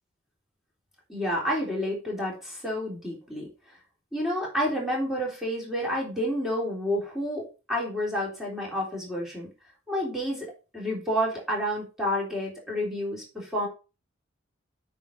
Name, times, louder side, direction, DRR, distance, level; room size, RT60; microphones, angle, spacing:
voice 1, 1.1-3.8 4.1-9.5 9.9-13.7, equal, ahead, -3 dB, 3.6 m, -30 dB
8.9 x 4.8 x 5.3 m, 0.32 s
head